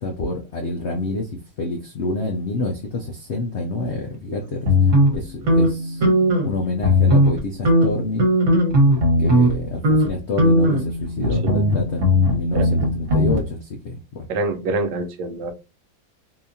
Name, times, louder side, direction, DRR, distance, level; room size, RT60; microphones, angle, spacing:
voice 1, 0.0-1.3 1.6-4.7 5.1-6.0 6.4-8.3 9.2-14.3, left 2 dB, 80° left, 2 dB, 0.6 m, -27 dB
sound 1, 4.7-6.5 6.8-7.4 7.7-9.5 9.8-10.1 10.4-13.4, equal, 45° right, 1.4 m, -18 dB
voice 2, 14.3-15.5, right 3 dB, 75° right, 6 dB, 1.3 m, -26 dB
4.0 x 2.8 x 2.6 m, 0.28 s
omnidirectional pair, 2.0 m